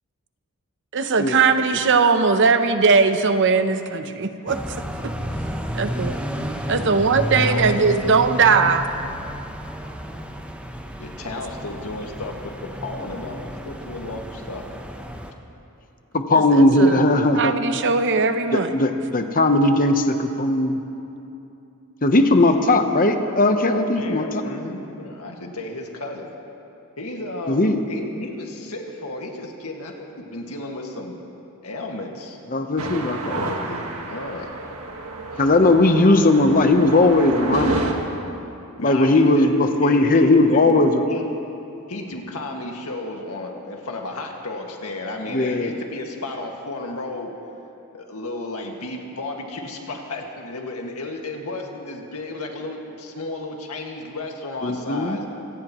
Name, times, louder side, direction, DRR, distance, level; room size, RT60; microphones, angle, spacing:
voice 1, 0.9-4.6 5.0-5.1 5.7-6.1 6.7-8.8 16.3-17.0 17.3-18.7, right 4 dB, 55° right, 9 dB, 0.8 m, -19 dB
sound 1, 4.5-15.3, equal, 5° right, 0.9 m, -31 dB
voice 2, 6.9-7.9 11.0-14.7 22.5-22.8 23.9-26.3 27.0-31.2 31.6-32.4 33.3-34.5 35.3-35.5 38.8-39.5 39.8-41.3 41.9-47.3 47.9-55.3, left 2 dB, 80° left, 1 dB, 1.9 m, -33 dB
voice 3, 16.1-17.5 18.5-20.8 22.0-24.3 27.5-27.8 32.5-33.4 35.4-37.9 38.8-41.0 45.3-45.7 54.6-55.2, left 2 dB, 40° left, 6 dB, 1.0 m, -18 dB
sound 2, 32.8-37.9, right 2 dB, 85° right, 1.7 m, -30 dB
26.0 x 17.5 x 3.1 m, 2.8 s
head